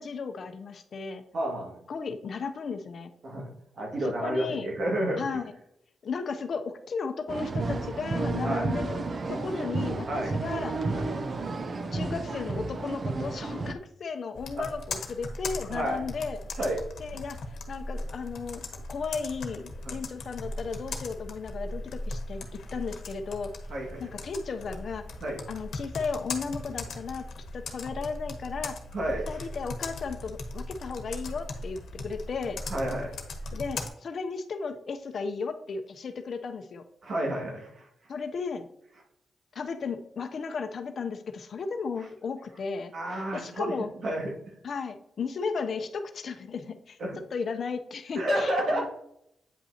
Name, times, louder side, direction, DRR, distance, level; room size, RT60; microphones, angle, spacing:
voice 1, 0.0-1.2 1.9-3.1 4.2-4.7 5.2-5.5 6.0-10.7 11.9-16.4 17.0-18.6 18.9-22.5 22.7-23.5 24.0-25.0 25.5-27.2 27.5-28.8 29.3-32.6 33.5-36.8 38.1-38.6 39.5-42.9 43.3-43.9 44.6-47.0 47.3-48.9, left 5 dB, 50° left, 7 dB, 0.6 m, -35 dB
voice 2, 1.3-1.7 3.2-3.5 3.8-5.2 8.4-8.7 10.1-10.3 10.9-11.1 14.5-14.7 15.7-16.0 16.6-16.8 19.8-20.0 23.7-24.0 25.2-25.4 28.9-29.5 32.7-33.1 37.0-37.9 42.9-43.7 44.0-44.6 47.0-47.2 48.1-48.9, right 1 dB, 55° right, -1 dB, 2.0 m, -30 dB
sound 1, 7.3-13.7, right 3 dB, 40° right, 0.5 m, -31 dB
Computer keyboard, 14.3-33.9, left 2 dB, 75° left, 1.1 m, -38 dB
8.8 x 5.5 x 2.8 m, 0.76 s
wide cardioid pair, 140°, 0 cm